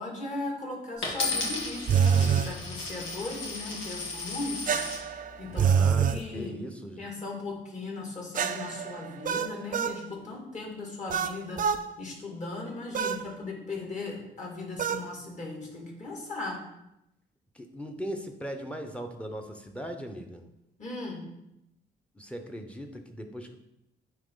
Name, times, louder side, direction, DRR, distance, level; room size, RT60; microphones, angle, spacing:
voice 1, 0.0-4.8 5.4-6.6 7.0-11.6 12.0-16.6 20.8-21.2, left 3 dB, 35° left, -2 dB, 2.3 m, -37 dB
Coin (dropping), 1.0-5.0 5.7-6.2, left 3 dB, 75° left, 1.9 m, -34 dB
sound 1, 1.9-2.5 4.7-6.2 8.3-10.0 11.1-11.8 12.9-13.2 14.8-15.1, right 7 dB, 45° right, 0.4 m, -26 dB
voice 2, 5.4-7.0 17.5-20.4 22.2-23.6, equal, 5° left, 5 dB, 0.9 m, -39 dB
9.2 x 3.1 x 3.9 m, 0.84 s
cardioid pair, 90°, 20 cm